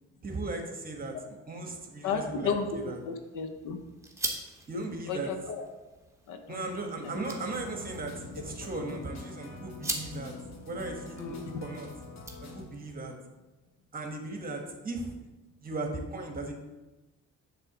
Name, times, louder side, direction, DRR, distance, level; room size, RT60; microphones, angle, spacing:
voice 1, 0.2-2.5 2.9-3.0 4.7-5.3 6.5-10.3 10.7-11.9 12.4-13.1 13.9-15.1 15.6-16.5, right 2 dB, 30° right, 3 dB, 1.3 m, -37 dB
voice 2, 2.0-3.8 5.1-5.7 6.3-6.7 11.2-11.4, left 5 dB, 85° left, 6 dB, 0.9 m, -33 dB
sound 1, 2.6-12.9, right 2 dB, 10° right, 1.2 m, -43 dB
sound 2, 7.0-12.7, left 2 dB, 60° left, 1.2 m, -45 dB
6.8 x 3.6 x 6.0 m, 1.1 s
cardioid pair, 90°, 30 cm